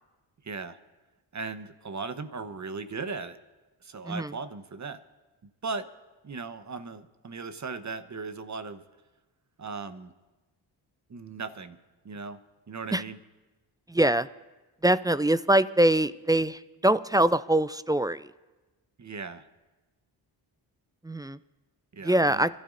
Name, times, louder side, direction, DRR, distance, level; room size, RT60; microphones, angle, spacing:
voice 1, 0.4-0.8 1.3-3.4 3.8-5.0 5.6-5.9 6.2-8.8 9.6-10.1 11.1-11.8 12.0-12.4 12.7-13.2 19.0-19.4 21.9-22.5, right 4 dB, 35° right, 11 dB, 1.0 m, -37 dB
voice 2, 13.9-14.3 14.8-18.3 21.0-21.4 22.0-22.5, right 1 dB, 10° right, 15 dB, 0.3 m, -23 dB
26.0 x 12.5 x 2.6 m, 1.2 s
supercardioid pair, 40°, 49 cm